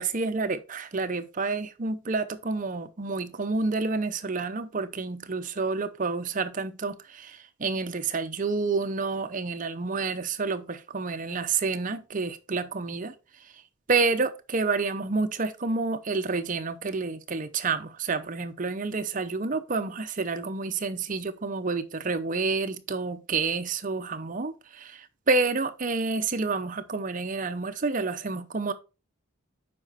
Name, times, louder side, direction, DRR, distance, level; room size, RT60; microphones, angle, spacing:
voice 1, 0.0-13.1 13.9-28.7, right 4 dB, 40° right, 0.6 m, -29 dB
7.6 x 5.0 x 4.1 m
head